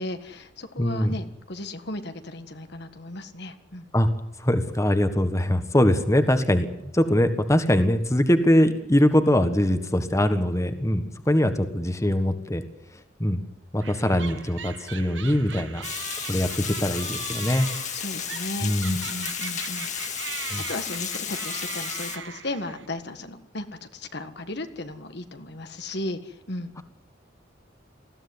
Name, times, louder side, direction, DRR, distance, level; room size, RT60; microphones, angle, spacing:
voice 1, 0.0-3.9 17.9-20.4 20.7-26.8, left 2 dB, 60° left, 8 dB, 1.7 m, -35 dB
voice 2, 0.8-1.2 3.9-4.1 4.4-12.6 13.2-13.4 13.7-15.8 16.3-16.5 16.8-17.7 18.6-19.0 20.5-20.6, left 1 dB, 15° left, 8 dB, 1.5 m, -22 dB
sound 1, 13.8-22.9, right 7 dB, 75° right, 1.8 m, -39 dB
Water, 15.8-22.2, left 8 dB, 40° left, 2.1 m, -33 dB
20.5 x 15.5 x 9.7 m, 0.84 s
head